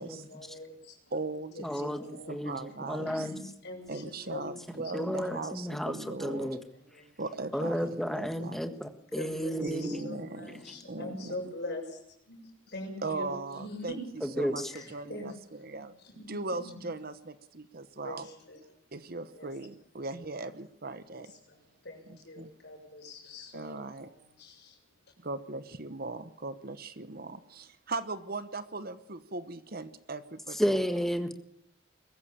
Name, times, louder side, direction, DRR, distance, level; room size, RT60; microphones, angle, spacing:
voice 1, 0.0-1.0 1.5-2.3 3.1-4.6 5.0-5.1 6.3-6.4 6.7-7.1 7.5-7.8 9.2-13.3 13.6-14.2 14.5-16.8 18.0-18.7 19.3-19.5 21.1-24.8, left 1 dB, 55° left, 1 dB, 7.3 m, -44 dB
voice 2, 1.1-3.2 3.9-6.5 7.2-8.6 9.6-10.6 10.9-11.4 13.0-14.0 14.4-15.9 16.3-18.3 18.9-21.3 22.4-22.5 23.5-24.1 25.2-30.9, right 3 dB, 45° right, 12 dB, 1.0 m, -39 dB
voice 3, 1.6-3.3 4.9-6.6 7.5-10.0 14.4-14.7 30.6-31.4, equal, ahead, 7 dB, 1.6 m, -32 dB
22.5 x 14.5 x 8.8 m, 0.74 s
head